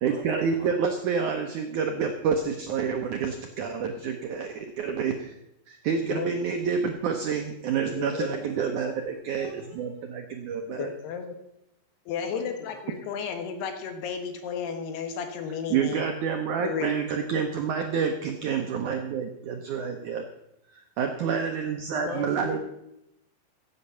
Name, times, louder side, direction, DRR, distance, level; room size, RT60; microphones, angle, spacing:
voice 1, 0.0-5.3 5.7-10.9 15.7-20.3 20.7-22.6, right 6 dB, 75° right, 4 dB, 1.8 m, -28 dB
voice 2, 7.9-8.3 10.8-11.4 12.1-16.1 16.6-17.0, left 6 dB, 75° left, 6 dB, 3.3 m, -33 dB
voice 3, 8.4-8.8 9.1-10.1 12.3-12.8 21.9-22.6, left 3 dB, 60° left, 2 dB, 1.7 m, -42 dB
15.5 x 8.5 x 6.9 m, 0.84 s
omnidirectional pair, 4.8 m